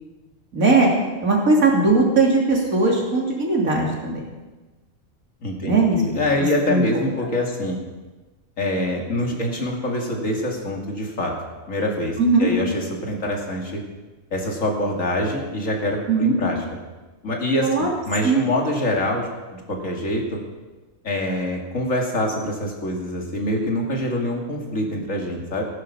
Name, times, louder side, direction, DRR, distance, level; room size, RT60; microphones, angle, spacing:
voice 1, 0.5-0.9 1.2-4.2 5.6-6.0 6.7-6.8 12.2-12.5 16.1-16.4 17.6-17.9 18.2-18.4, right 3 dB, 80° right, -2 dB, 3.4 m, -18 dB
voice 2, 5.4-7.8 8.6-11.3 11.7-13.8 14.3-16.6 17.2-20.4 21.0-25.6, left 1 dB, 70° left, 0 dB, 2.8 m, -25 dB
15.5 x 11.5 x 5.7 m, 1.2 s
omnidirectional pair, 1.4 m